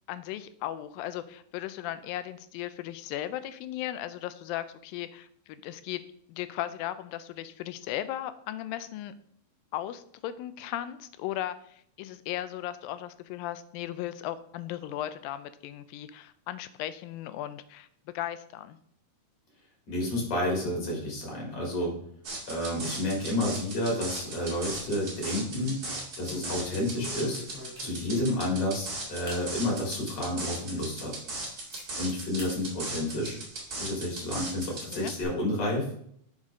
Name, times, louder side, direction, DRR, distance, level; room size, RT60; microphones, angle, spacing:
voice 1, 0.1-6.0 6.3-9.1 9.7-17.9 18.1-18.8 34.9-35.1, left 13 dB, 85° left, 13 dB, 2.3 m, -36 dB
voice 2, 19.9-21.9 22.5-25.8 26.2-27.4 27.8-31.2 32.0-33.4 33.8-35.9, left 1 dB, 50° left, -2 dB, 4.3 m, -30 dB
sound 1, 22.2-35.2, right 2 dB, 30° right, 2.3 m, -38 dB
sound 2, 25.6-25.7 26.2-28.3 28.8-28.9 29.2-29.5 30.0-30.1 30.6-30.7 31.0-31.8 32.4-32.6 32.9-33.9, left 3 dB, 5° left, 2.9 m, -45 dB
10.5 x 6.6 x 3.7 m, 0.66 s
omnidirectional pair, 4.1 m